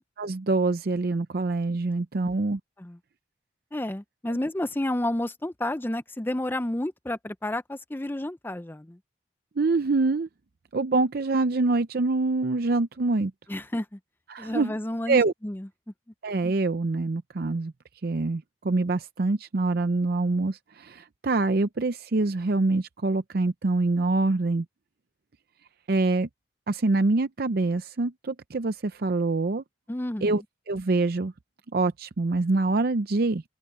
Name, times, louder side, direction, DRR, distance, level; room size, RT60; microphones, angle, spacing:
voice 1, 0.2-2.6 9.6-10.3 10.7-13.3 14.3-14.7 15.1-15.3 16.2-17.7 18.0-24.7 25.9-26.3 26.7-29.6 30.2-31.3 31.7-33.4, right 3 dB, 55° right, 0.6 m, -25 dB
voice 2, 3.7-9.0 13.5-14.0 14.4-15.7 29.9-30.4, left 1 dB, 10° left, 0.5 m, -31 dB
open air
head